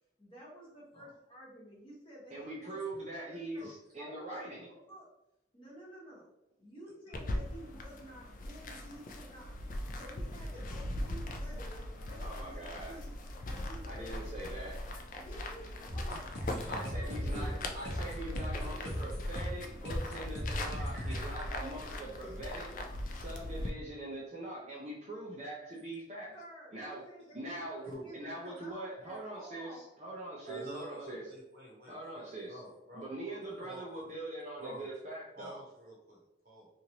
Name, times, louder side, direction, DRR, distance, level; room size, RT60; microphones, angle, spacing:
voice 1, 0.2-2.8 3.1-3.6 4.0-4.4 4.7-5.1 5.5-6.3 6.6-9.5 10.0-13.1 13.4-14.7 15.2-17.3 18.1-19.1 20.7-20.8 21.3-21.5 21.8-23.0 26.3-29.9, equal, 25° left, -5 dB, 1.0 m, -52 dB
voice 2, 2.3-4.7 12.0-13.0 13.8-14.7 16.7-22.7 23.1-26.4 26.7-27.1 27.3-31.3 31.9-32.6 32.9-35.6, right 1 dB, 35° right, -4 dB, 0.5 m, -43 dB
sound 1, 7.1-23.7, left 1 dB, 45° left, 0.3 m, -40 dB
sound 2, 15.9-21.2, equal, 65° left, 0.8 m, -38 dB
voice 3, 16.4-16.9 17.2-17.7 20.8-21.3 27.9-28.1 30.4-33.9 34.6-34.8 35.4-36.7, right 1 dB, 50° right, -3 dB, 1.0 m, -48 dB
3.0 x 2.5 x 2.8 m, 0.86 s
head